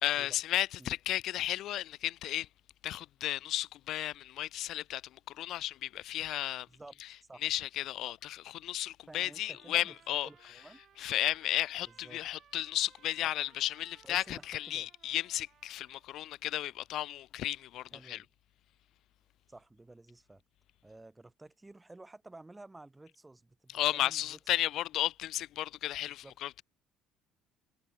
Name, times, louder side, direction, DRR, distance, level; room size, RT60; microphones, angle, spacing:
voice 1, 0.0-2.5 2.8-5.0 5.4-6.7 7.4-10.3 11.0-18.2 23.7-26.6, left 13 dB, 60° left, 0.5 m, -34 dB
voice 2, 6.7-7.0 7.3-7.4 8.0-8.1 9.1-10.8 11.9-12.3 13.2-13.3 14.0-14.9 17.9-18.3 19.5-20.4 20.8-24.4 26.0-26.4, right 2 dB, 10° right, 2.6 m, -52 dB
Trumpet, 9.3-16.1, right 10 dB, 50° right, 2.4 m, -63 dB
cardioid pair, 120°, 0 cm